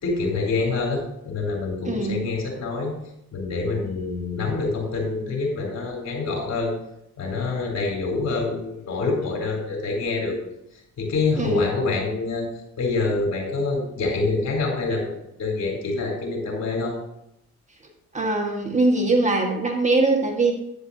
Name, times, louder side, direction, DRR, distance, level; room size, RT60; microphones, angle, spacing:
voice 1, 0.0-2.9 3.3-6.7 7.2-10.4 10.7-12.5 12.8-17.0, left 3 dB, 60° left, -1 dB, 3.9 m, -26 dB
voice 2, 1.8-2.2 11.4-11.6 18.1-20.5, right 2 dB, 25° right, 1 dB, 1.7 m, -21 dB
10.5 x 9.5 x 2.8 m, 0.80 s
cardioid pair, 90°, 30 cm